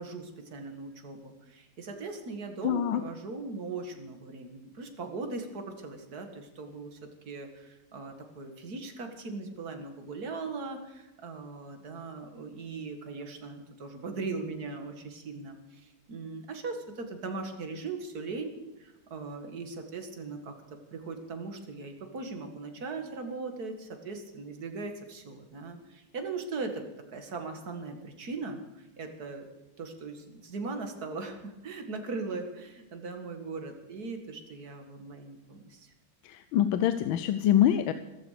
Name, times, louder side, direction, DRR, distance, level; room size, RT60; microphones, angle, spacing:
voice 1, 0.0-18.5 18.8-29.4 29.8-35.9, right 3 dB, 50° right, 5 dB, 2.4 m, -39 dB
voice 2, 2.6-3.0 36.2-37.9, left 11 dB, 80° left, 11 dB, 1.5 m, -25 dB
14.5 x 14.0 x 6.7 m, 1.0 s
omnidirectional pair, 2.1 m